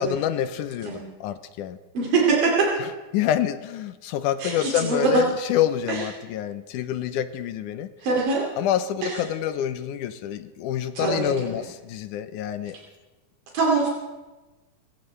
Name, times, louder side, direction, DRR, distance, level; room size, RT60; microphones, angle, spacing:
voice 1, 0.0-1.8 2.8-7.9 8.6-12.8, left 11 dB, 75° left, 11 dB, 2.2 m, -27 dB
voice 2, 1.9-2.5 4.4-5.2 5.9-6.0 8.0-8.4 9.0-9.2 11.0-11.7 13.5-13.9, right 4 dB, 85° right, -3 dB, 4.3 m, -23 dB
27.0 x 15.0 x 3.3 m, 1.2 s
omnidirectional pair, 3.9 m